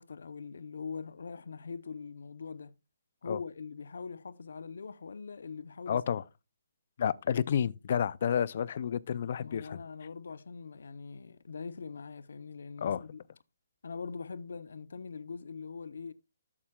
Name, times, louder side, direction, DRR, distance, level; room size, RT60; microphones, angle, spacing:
voice 1, 0.0-2.7 3.2-6.0 9.4-13.2 13.8-16.1, left 5 dB, 75° left, 0.7 m, -42 dB
voice 2, 5.9-6.2 7.0-9.8 12.8-13.0, left 8 dB, 45° left, 0.4 m, -30 dB
13.5 x 7.3 x 2.3 m
hypercardioid pair, 175°, 0 cm